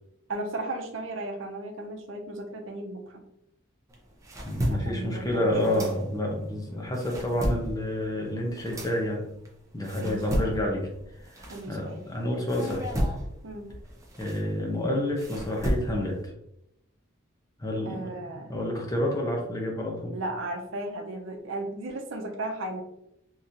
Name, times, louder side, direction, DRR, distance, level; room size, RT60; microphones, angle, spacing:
voice 1, 0.3-3.2 4.7-5.9 10.0-10.5 11.5-12.0 13.4-13.7 17.8-18.5 20.1-22.8, right 2 dB, 75° right, 2 dB, 0.7 m, -35 dB
sound 1, 3.9-6.4 6.8-12.1 12.5-16.2, equal, 15° right, 0.6 m, -33 dB
voice 2, 4.4-9.3 9.7-10.9 11.2-12.9 14.2-16.3 17.6-20.2, left 1 dB, 20° left, 0 dB, 0.7 m, -29 dB
4.1 x 3.0 x 2.6 m, 0.81 s
head